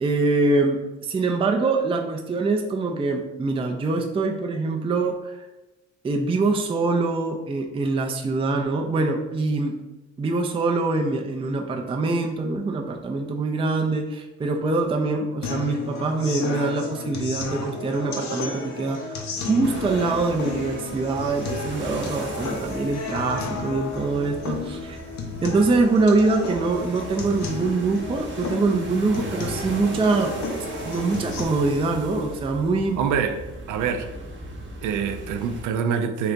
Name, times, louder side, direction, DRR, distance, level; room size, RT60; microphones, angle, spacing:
voice 1, 0.0-5.5 6.0-9.8 10.2-19.2 19.5-25.0 25.4-30.3 30.8-33.0, right 3 dB, 20° right, 0.4 m, -24 dB
sound 1, 15.4-31.4, left 3 dB, 65° left, 0.8 m, -33 dB
sound 2, 19.6-35.6, right 1 dB, 40° right, 0.9 m, -38 dB
voice 2, 33.0-33.4 33.7-34.1 34.8-36.3, right 7 dB, 80° right, 0.5 m, -25 dB
3.8 x 2.8 x 3.3 m
cardioid pair, 90°, 30 cm